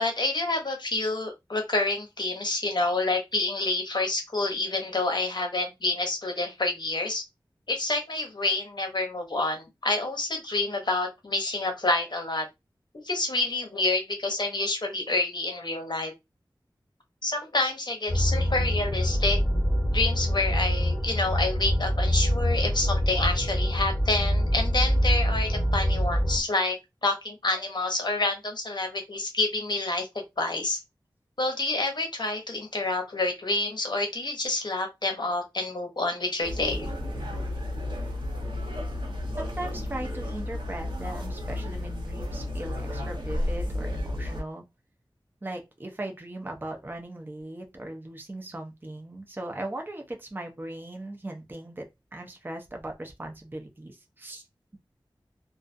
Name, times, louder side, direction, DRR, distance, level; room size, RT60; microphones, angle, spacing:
voice 1, 0.0-7.2 7.7-12.5 13.0-16.1 17.2-19.4 19.9-30.1 30.4-30.8 31.4-36.9, left 2 dB, 55° left, 0.7 m, -28 dB
sound 1, 18.1-26.4, equal, 10° left, 1.2 m, -25 dB
sound 2, 36.4-44.4, left 1 dB, 65° right, 0.9 m, -32 dB
voice 2, 39.4-44.6 45.4-51.9 52.1-54.4, right 1 dB, 25° right, 0.5 m, -38 dB
2.4 x 2.3 x 2.5 m
wide cardioid pair, 65°, 9 cm